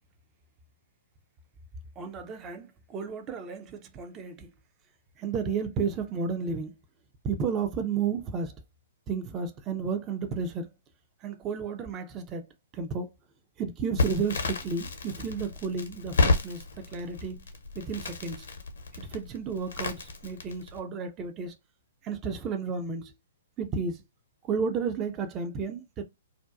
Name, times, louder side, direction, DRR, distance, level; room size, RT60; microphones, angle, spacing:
voice 1, 2.0-2.7 2.9-4.5 5.2-6.7 7.2-8.5 9.1-10.7 11.2-12.5 12.7-13.1 13.6-17.4 17.8-18.5 18.9-21.5 22.0-23.1 23.6-24.0 24.5-26.0, right 5 dB, 25° right, 0.5 m, -32 dB
Crackle, 14.0-20.8, left 3 dB, 70° left, 0.7 m, -31 dB
2.5 x 2.2 x 2.3 m
figure-of-eight pair, 120°, 0 cm